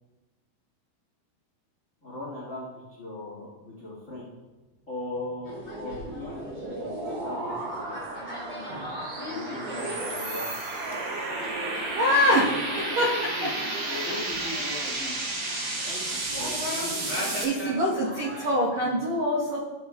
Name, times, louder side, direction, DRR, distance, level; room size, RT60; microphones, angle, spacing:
voice 1, 2.0-2.7 3.0-4.3 4.9-7.6 7.9-8.7 9.2-10.5 12.3-13.1 13.3-13.5 13.9-15.2 15.8-18.3 18.8-18.9, left 2 dB, 90° left, -4 dB, 0.7 m, -39 dB
sound 1, 5.4-18.5, equal, 20° right, 1.6 m, -39 dB
sound 2, 5.4-17.4, right 2 dB, 55° right, 1.3 m, -33 dB
sound 3, 9.6-15.7 16.2-16.3, right 2 dB, 90° right, 3.5 m, -40 dB
voice 2, 11.9-12.5 13.0-13.1 13.4-13.5 17.4-19.6, equal, 75° right, -5 dB, 1.6 m, -24 dB
14.0 x 7.1 x 2.3 m, 1.2 s
omnidirectional pair, 4.9 m